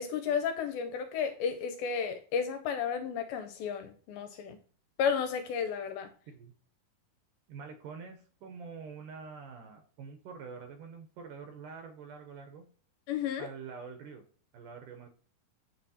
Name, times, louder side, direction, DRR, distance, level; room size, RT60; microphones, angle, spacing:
voice 1, 0.0-4.6 5.0-6.1 13.1-13.5, left 7 dB, 80° left, 2.4 m, -32 dB
voice 2, 7.5-12.6 13.4-14.3 14.5-15.1, right 5 dB, 70° right, 2.1 m, -46 dB
8.9 x 4.2 x 2.7 m
omnidirectional pair, 4.5 m